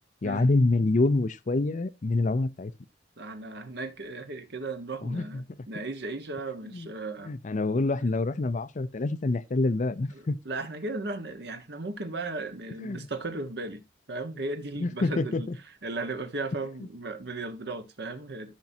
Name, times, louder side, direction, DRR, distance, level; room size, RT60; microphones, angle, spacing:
voice 1, 0.2-2.7 5.0-5.4 6.7-6.9 7.2-10.4 12.8-13.1 14.8-15.6, left 2 dB, 45° left, 0.5 m, -26 dB
voice 2, 3.2-7.3 10.1-13.8 14.1-15.5 15.8-18.5, right 2 dB, 65° right, 1.3 m, -36 dB
15.0 x 5.9 x 2.7 m
head